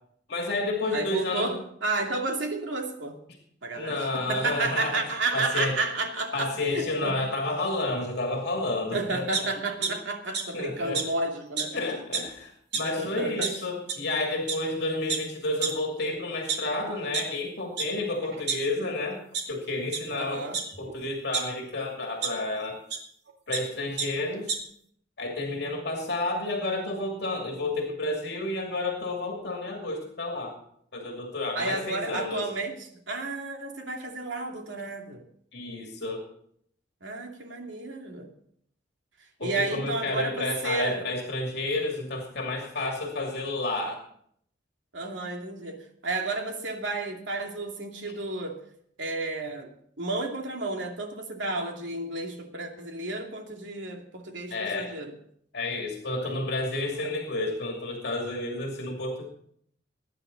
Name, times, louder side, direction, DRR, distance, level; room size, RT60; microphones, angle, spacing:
voice 1, 0.3-1.5 3.7-5.7 6.3-9.5 9.8-9.9 10.5-11.0 11.7-19.2 19.5-20.4 20.8-22.8 23.5-24.5 25.2-30.6 30.9-32.5 35.5-36.2 39.4-44.0 54.5-54.9 55.5-59.3, left 2 dB, 65° left, 1 dB, 2.6 m, -30 dB
voice 2, 0.9-3.2 3.6-7.2 8.9-11.8 13.0-13.5 20.1-20.6 31.5-35.2 37.0-38.3 39.4-41.0 44.9-48.6 49.0-55.1 56.2-56.5 56.9-57.1, right 3 dB, 85° right, 2 dB, 2.6 m, -32 dB
sound 1, 9.3-9.9 10.3-10.4 10.9-11.0 11.6-11.7 12.0-12.3 12.7-12.8 13.4-13.5 13.9-14.0 14.5-14.6 15.1-15.2 15.6-15.7 16.3-17.2 17.8-17.9 18.2-18.9 19.3-19.4 19.9-20.0 20.5-21.4 22.2-22.3 22.9-23.0 23.3-23.6 24.0-24.1 24.3-24.6, right 6 dB, 65° right, 2.6 m, -29 dB
21.5 x 9.8 x 4.0 m, 0.67 s
head